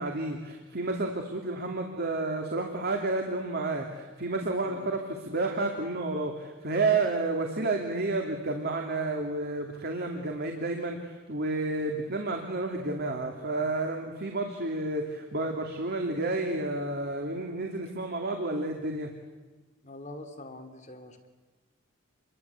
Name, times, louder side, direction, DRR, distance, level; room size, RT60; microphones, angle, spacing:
voice 1, 0.0-19.1, right 2 dB, 50° right, 3 dB, 2.8 m, -31 dB
voice 2, 19.8-21.3, left 1 dB, 35° left, 6 dB, 2.9 m, -45 dB
29.0 x 22.5 x 8.4 m, 1.2 s
head